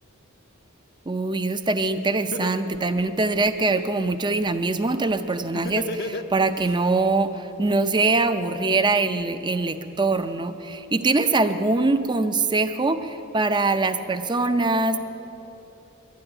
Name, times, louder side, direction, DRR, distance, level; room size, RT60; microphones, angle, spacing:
voice 1, 1.1-15.0, right 3 dB, 20° right, 10 dB, 0.5 m, -23 dB
Laughter, 1.8-1.9 2.3-3.8 5.5-6.7, left 2 dB, 45° left, 0.6 m, -32 dB
11.5 x 10.5 x 9.8 m, 3.0 s
head